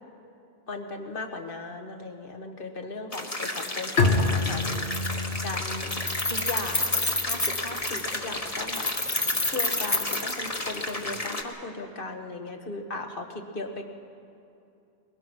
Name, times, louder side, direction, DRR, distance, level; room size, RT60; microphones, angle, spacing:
voice 1, 0.7-5.9 6.3-8.8 9.4-13.8, left 2 dB, 55° left, 5 dB, 1.7 m, -37 dB
sound 1, 3.1-11.4, left 2 dB, 35° left, 1.6 m, -33 dB
Bowed string instrument, 4.0-7.5, left 3 dB, 85° left, 2.0 m, -28 dB
Keys jangling, 4.3-4.4 4.7-5.5 5.7-8.1 8.7-10.9, left 2 dB, 20° left, 0.8 m, -29 dB
22.5 x 21.0 x 6.3 m, 2.7 s
omnidirectional pair, 1.1 m